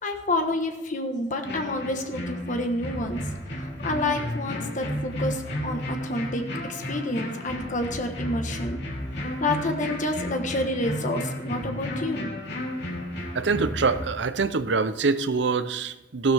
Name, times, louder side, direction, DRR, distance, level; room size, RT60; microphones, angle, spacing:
voice 1, 0.0-3.2 3.6-8.8 9.4-12.3, left 1 dB, 40° left, 5 dB, 1.3 m, -29 dB
sound 1, 1.4-14.1, equal, 60° left, 3.2 m, -33 dB
voice 2, 13.3-16.3, right 4 dB, 65° right, 13 dB, 0.7 m, -24 dB
16.0 x 12.0 x 3.5 m, 1.0 s
head